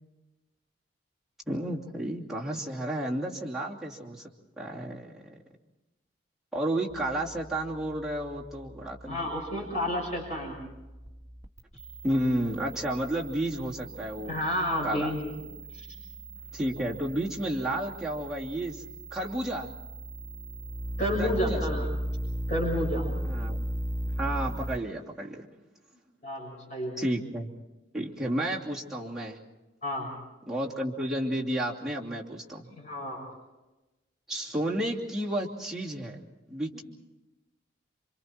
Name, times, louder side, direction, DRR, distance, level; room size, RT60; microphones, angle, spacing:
voice 1, 1.5-5.4 6.5-9.3 12.0-14.4 14.8-15.1 16.5-18.8 19.1-19.7 21.2-21.9 23.3-23.6 24.2-25.5 27.0-27.5 27.9-29.4 30.5-32.7 34.3-36.8, right 1 dB, ahead, -5 dB, 2.8 m, -32 dB
sound 1, 6.9-24.8, right 1 dB, 20° right, 2.0 m, -37 dB
voice 2, 9.1-10.6 14.3-15.3 15.7-15.9 21.0-21.8 22.5-23.1 26.2-27.0 29.8-30.1 32.8-33.3, equal, 40° left, -1 dB, 6.5 m, -30 dB
29.0 x 25.5 x 4.5 m, 1.1 s
head